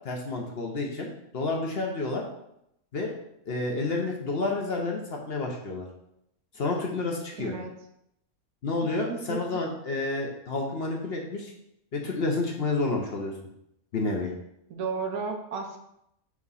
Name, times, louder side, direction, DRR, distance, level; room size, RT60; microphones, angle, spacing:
voice 1, 0.0-1.1 1.3-2.3 2.9-3.2 3.5-5.9 6.5-7.5 8.6-11.5 11.9-13.3 13.9-14.3, left 3 dB, 50° left, 0 dB, 1.0 m, -29 dB
voice 2, 7.4-7.7 9.1-9.4 14.7-15.8, right 5 dB, 80° right, 3 dB, 1.3 m, -33 dB
4.8 x 3.5 x 5.5 m, 0.78 s
omnidirectional pair, 1.5 m